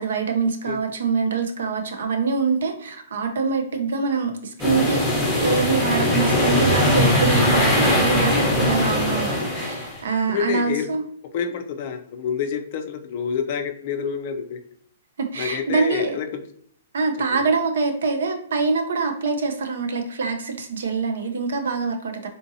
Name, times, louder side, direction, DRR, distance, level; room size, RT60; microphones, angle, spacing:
voice 1, 0.0-5.0 5.4-11.0 15.2-16.2 16.9-22.3, right 4 dB, 75° right, 5 dB, 0.5 m, -24 dB
sound 1, 4.6-10.0, left 1 dB, ahead, 0.7 m, -20 dB
voice 2, 10.3-11.0 11.3-14.6 15.3-16.3 17.3-17.5, left 7 dB, 40° left, 6 dB, 0.4 m, -27 dB
3.7 x 2.6 x 2.6 m, 0.63 s
hypercardioid pair, 165°, 0 cm